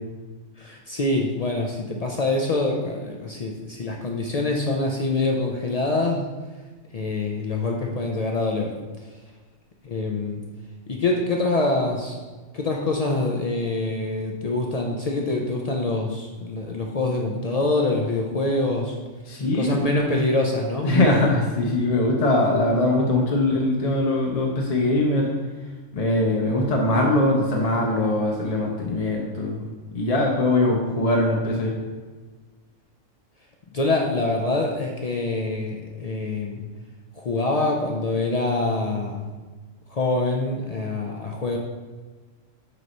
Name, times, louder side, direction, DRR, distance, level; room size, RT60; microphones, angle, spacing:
voice 1, 0.6-6.3 6.9-8.7 9.8-10.4 10.9-12.2 12.5-19.0 19.6-21.0 33.7-36.6 37.1-39.3 39.9-41.6, left 2 dB, 80° left, 0 dB, 0.3 m, -25 dB
voice 2, 19.3-19.9 20.8-25.3 25.9-29.7 29.9-31.7, left 2 dB, 40° left, -1 dB, 0.6 m, -21 dB
6.2 x 2.9 x 5.2 m, 1.3 s
omnidirectional pair, 1.4 m